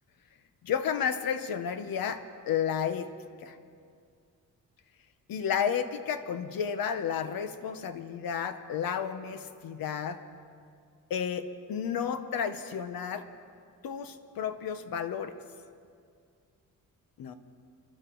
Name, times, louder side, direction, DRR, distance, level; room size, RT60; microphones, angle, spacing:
voice 1, 0.6-3.1 3.4-3.6 5.3-10.2 11.1-13.3 13.8-15.3 17.2-17.3, left 7 dB, 85° left, 10 dB, 0.9 m, -32 dB
25.5 x 12.0 x 3.9 m, 2.3 s
wide cardioid pair, 160°, 34 cm